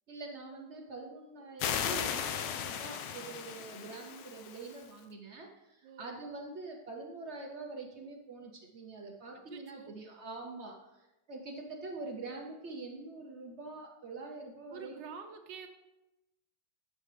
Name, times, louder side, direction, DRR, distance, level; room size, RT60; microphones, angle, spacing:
voice 1, 0.1-15.0, right 3 dB, 55° right, 1 dB, 0.8 m, -45 dB
sound 1, 1.6-4.9, left 8 dB, 85° left, 1.3 m, -36 dB
voice 2, 9.5-9.9 14.7-15.7, right 6 dB, 85° right, 6 dB, 1.4 m, -47 dB
7.3 x 6.6 x 3.3 m, 0.98 s
omnidirectional pair, 1.9 m